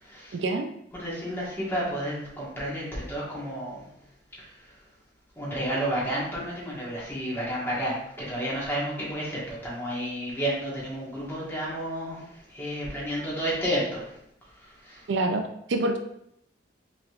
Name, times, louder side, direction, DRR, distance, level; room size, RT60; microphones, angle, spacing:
voice 1, 0.3-0.7 15.1-15.4 15.7-16.0, right 2 dB, 65° right, 6 dB, 0.4 m, -25 dB
voice 2, 0.9-3.9 5.4-12.2 12.5-14.1 14.8-15.0, equal, 10° left, -6 dB, 1.4 m, -31 dB
5.0 x 3.2 x 2.4 m, 0.77 s
head